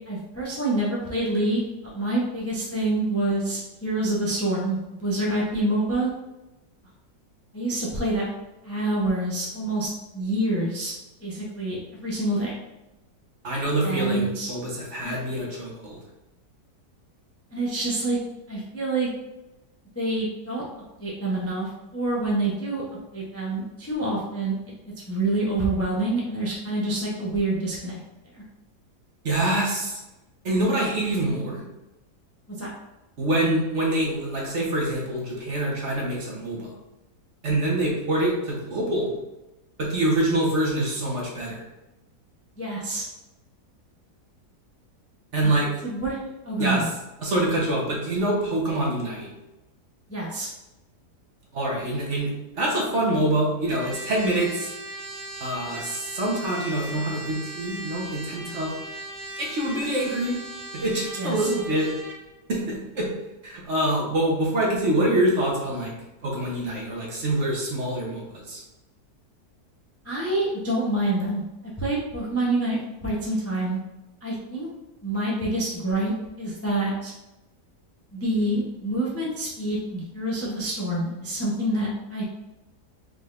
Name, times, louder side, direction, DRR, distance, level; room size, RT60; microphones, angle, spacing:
voice 1, 0.1-1.6 1.9-6.1 7.5-8.3 8.6-10.9 11.2-12.5 13.8-14.5 15.0-15.2 17.5-18.2 18.5-19.1 19.9-20.6 21.0-22.8 23.1-24.5 25.1-28.0 28.3-28.4 32.5-32.7 42.6-43.1 45.4-45.5 45.8-46.9 50.1-50.5 61.2-61.5 70.0-71.4 71.8-73.8 74.2-74.7 75.0-77.1 78.1-82.2, right 2 dB, 20° left, -5 dB, 0.4 m, -27 dB
voice 2, 13.4-16.0 29.2-30.0 30.4-31.6 33.2-36.7 37.4-39.1 39.8-41.6 45.3-45.7 46.6-46.8 47.2-49.3 51.5-52.3 52.6-54.7 55.4-58.7 59.4-60.4 60.7-61.9 62.5-63.1 63.4-65.9 66.2-68.6, right 1 dB, 50° right, -3 dB, 1.2 m, -25 dB
Trumpet, 53.7-62.2, right 1 dB, 80° right, 1.4 m, -38 dB
4.8 x 3.8 x 2.5 m, 0.98 s
omnidirectional pair, 1.8 m